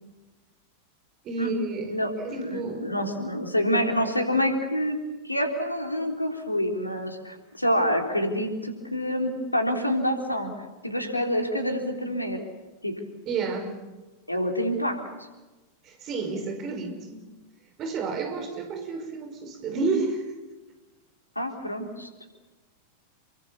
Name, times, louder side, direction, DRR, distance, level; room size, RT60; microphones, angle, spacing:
voice 1, 1.2-1.9 2.2-2.8 13.3-13.7 15.9-17.2 17.8-20.2, right 4 dB, 35° right, 6 dB, 5.6 m, -30 dB
voice 2, 1.9-5.0 5.2-10.5 10.8-12.4 12.8-12.9 14.3-15.0 21.4-22.3, equal, 85° left, 3 dB, 3.7 m, -27 dB
29.0 x 23.0 x 7.1 m, 1.2 s
figure-of-eight pair, 90°, 0 cm